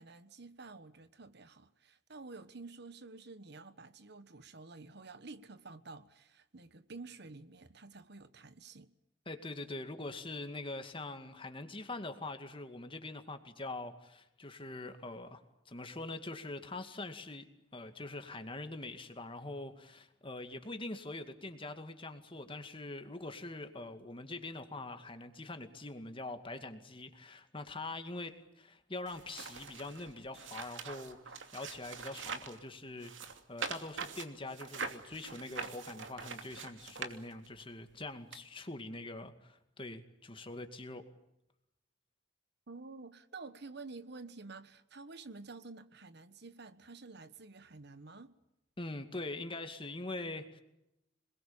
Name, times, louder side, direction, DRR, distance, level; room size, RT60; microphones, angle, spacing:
voice 1, 0.0-8.9 42.7-48.3, right 3 dB, 60° right, 1.3 m, -50 dB
voice 2, 9.3-17.5 17.7-41.0 48.8-50.6, left 2 dB, 30° left, 2.2 m, -44 dB
sound 1, 29.1-32.6 33.0-37.6 38.3-38.4, right 5 dB, 80° right, 2.7 m, -43 dB
27.5 x 21.0 x 8.7 m
head